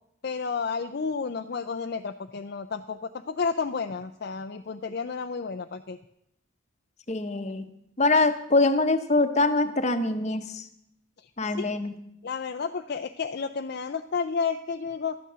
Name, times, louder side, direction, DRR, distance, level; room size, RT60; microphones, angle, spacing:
voice 1, 0.2-6.0 11.5-11.7 12.2-15.2, left 5 dB, 50° left, 6 dB, 0.4 m, -31 dB
voice 2, 7.1-7.7 8.0-10.7 11.4-11.9, left 2 dB, 35° left, 9 dB, 0.9 m, -24 dB
12.0 x 9.2 x 6.8 m, 0.79 s
head